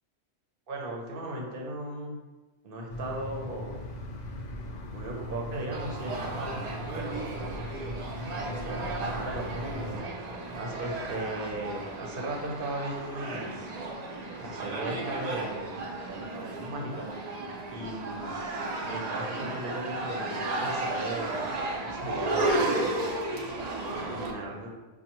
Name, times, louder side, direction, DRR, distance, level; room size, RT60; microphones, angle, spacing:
voice 1, 0.7-2.2 2.6-3.8 4.9-6.6 6.9-7.7 8.4-10.0 10.5-13.6 14.4-17.1 17.7-18.3 18.8-22.7 23.9-24.7, right 1 dB, 55° right, -1 dB, 0.8 m, -37 dB
sound 1, 2.9-10.0, left 1 dB, 65° left, 0.4 m, -39 dB
sound 2, 5.7-24.3, right 2 dB, 80° right, 0.3 m, -34 dB
5.1 x 2.2 x 2.9 m, 1.2 s
omnidirectional pair, 1.3 m